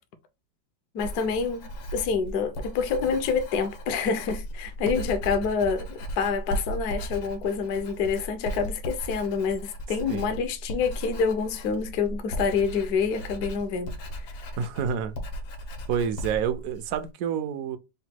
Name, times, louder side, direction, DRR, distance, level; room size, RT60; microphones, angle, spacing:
voice 1, 0.9-14.3, left 5 dB, 70° left, 1.0 m, -27 dB
Writing, 1.0-17.1, equal, 85° left, 1.7 m, -36 dB
voice 2, 14.6-15.2 15.9-17.8, right 7 dB, 80° right, 0.8 m, -28 dB
3.9 x 2.2 x 4.3 m
omnidirectional pair, 2.1 m